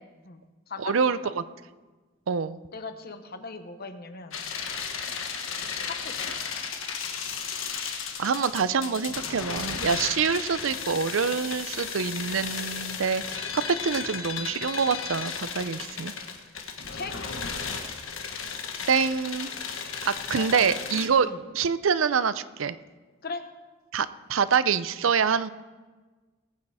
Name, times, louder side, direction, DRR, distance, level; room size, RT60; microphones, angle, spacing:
voice 1, 0.2-1.3 2.7-4.4 5.9-6.4 16.9-17.2 20.3-21.4 23.2-23.4, left 4 dB, 50° left, 8 dB, 1.0 m, -39 dB
voice 2, 0.8-1.4 2.3-2.6 8.2-13.5 13.8-16.1 18.9-19.5 20.1-22.8 23.9-25.5, right 6 dB, 75° right, 14 dB, 0.5 m, -26 dB
sound 1, 4.3-21.1, left 6 dB, 80° left, 1.4 m, -34 dB
19.0 x 8.5 x 4.9 m, 1.3 s
head